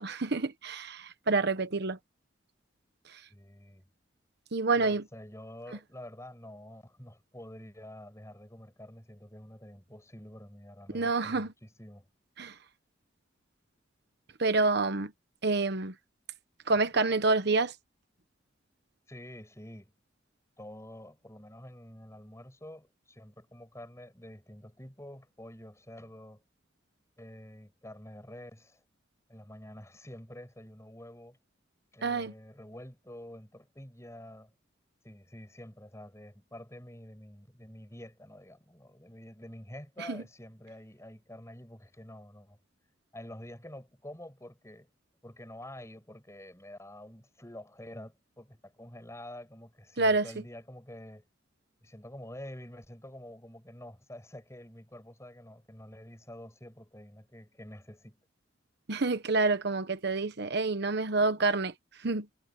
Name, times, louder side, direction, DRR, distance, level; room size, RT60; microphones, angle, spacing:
voice 1, 0.0-2.0 3.1-3.2 4.5-5.0 10.9-11.5 12.4-12.6 14.4-15.1 15.4-15.9 16.7-17.7 32.0-32.3 40.0-40.2 50.0-50.3 58.9-61.7 62.0-62.3, right 3 dB, 60° right, 1.1 m, -28 dB
voice 2, 3.3-3.8 4.8-12.1 19.1-19.9 20.6-26.4 27.2-28.8 29.3-31.4 31.9-34.5 35.0-42.6 43.1-44.9 45.2-51.3 51.8-58.2, left 1 dB, 15° left, 5.8 m, -48 dB
head